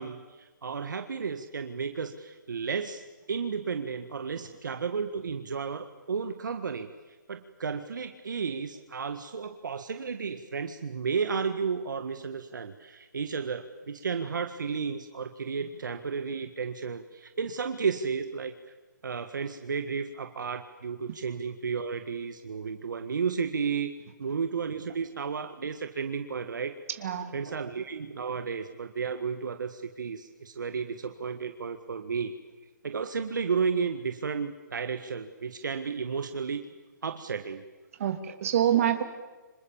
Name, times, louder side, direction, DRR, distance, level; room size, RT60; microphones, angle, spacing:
voice 1, 0.0-3.0 3.3-6.9 7.3-18.5 19.0-23.9 24.2-26.7 27.3-32.3 32.8-36.6 37.0-37.6, right 5 dB, 70° right, 7 dB, 1.7 m, -33 dB
voice 2, 27.0-27.6 38.0-39.0, right 10 dB, 45° right, 7 dB, 2.8 m, -26 dB
30.0 x 26.5 x 7.3 m, 1.3 s
hypercardioid pair, 155°, 10 cm